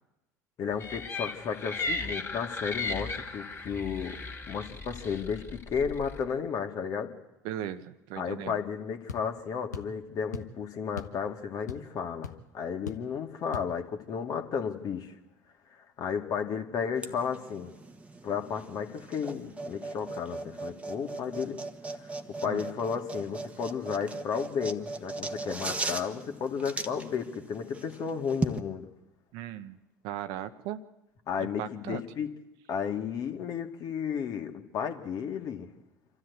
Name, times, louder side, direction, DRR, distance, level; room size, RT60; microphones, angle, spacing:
voice 1, 0.6-4.2 4.5-7.1 8.2-15.1 15.7-17.7 18.2-21.6 22.0-22.1 22.4-28.9 31.3-32.3 32.7-35.7, left 6 dB, 45° left, 4 dB, 2.1 m, -33 dB
sound 1, 0.8-6.2, left 3 dB, 25° left, 2.4 m, -36 dB
voice 2, 7.4-8.6 22.4-22.6 29.3-29.8 30.0-30.8 31.4-32.0, right 12 dB, 60° right, 11 dB, 1.0 m, -37 dB
sound 2, 9.1-9.3 9.7-10.0 10.3-10.6 11.0-11.2 11.5-12.0 12.2-12.4 12.9-13.1 13.5-13.7, left 5 dB, 85° left, 1.1 m, -39 dB
sound 3, 17.0-28.6, right 3 dB, 15° right, 1.3 m, -38 dB
27.0 x 13.0 x 8.3 m, 0.99 s
figure-of-eight pair, 70°, 9 cm